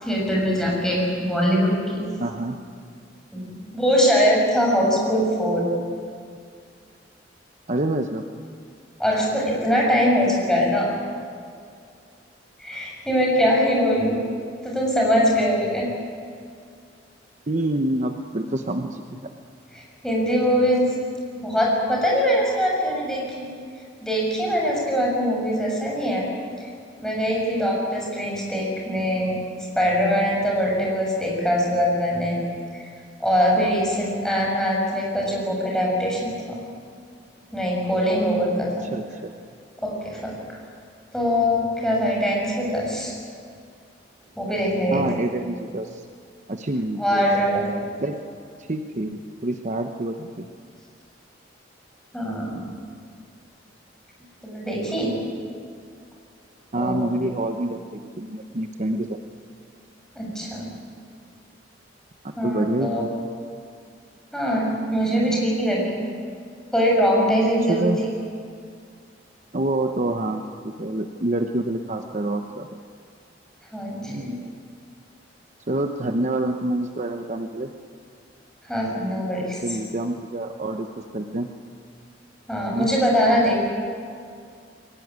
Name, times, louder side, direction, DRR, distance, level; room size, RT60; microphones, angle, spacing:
voice 1, 0.0-2.1 3.3-5.7 9.0-11.0 12.6-14.2 14.6-15.9 19.7-21.0 21.3-23.5 24.0-26.3 26.6-26.7 27.0-29.4 29.7-32.4 32.7-32.9 33.2-36.6 37.5-38.9 39.8-40.6 41.1-43.1 44.4-45.0 47.0-47.6 52.1-52.6 54.4-55.2 56.7-57.3 60.1-60.8 62.4-63.0 64.3-66.0 66.7-68.0 73.7-74.4 78.7-79.6 82.5-83.6, equal, 5° left, -2 dB, 6.6 m, -22 dB
voice 2, 2.2-2.6 7.7-8.2 17.5-19.2 38.9-39.3 44.9-46.0 46.5-47.3 48.0-48.2 48.6-50.5 56.7-59.2 62.4-63.1 67.7-68.0 69.5-72.7 74.1-74.5 75.7-77.7 79.4-80.9 81.1-81.5 82.7-82.9, right 1 dB, 40° right, 6 dB, 1.0 m, -27 dB
22.0 x 18.0 x 9.6 m, 2.3 s
head